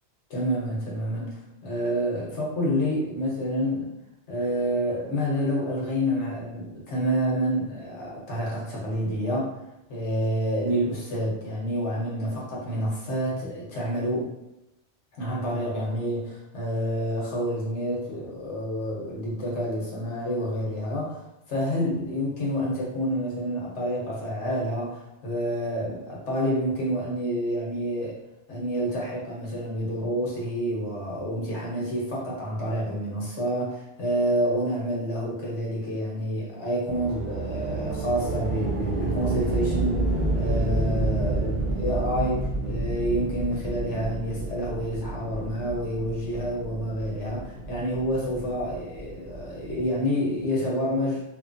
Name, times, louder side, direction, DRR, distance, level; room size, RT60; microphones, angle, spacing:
voice 1, 0.3-3.9 4.3-9.5 9.9-14.3 15.2-21.2 21.5-28.2 28.5-51.2, equal, 80° left, -4 dB, 1.1 m, -28 dB
sound 1, 36.9-49.9, right 2 dB, 50° right, 0.6 m, -30 dB
2.9 x 2.2 x 2.5 m, 0.90 s
omnidirectional pair, 1.2 m